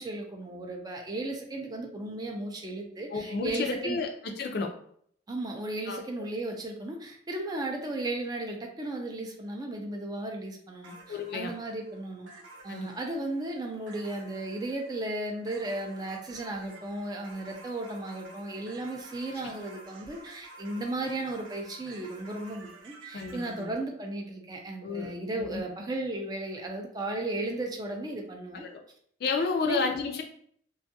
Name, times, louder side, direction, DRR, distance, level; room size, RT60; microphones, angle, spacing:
voice 1, 0.0-4.0 5.3-12.3 12.6-28.7 29.6-29.8, right 2 dB, 20° right, 2 dB, 0.3 m, -35 dB
voice 2, 3.1-4.1 4.4-4.7 5.9-6.0 11.1-11.5 12.7-12.9 23.1-23.8 24.8-25.6 28.6-28.8 29.2-30.2, left 4 dB, 55° left, 4 dB, 0.4 m, -31 dB
sound 1, 10.8-23.6, right 2 dB, 90° right, 0.6 m, -51 dB
2.5 x 2.3 x 2.6 m, 0.64 s
head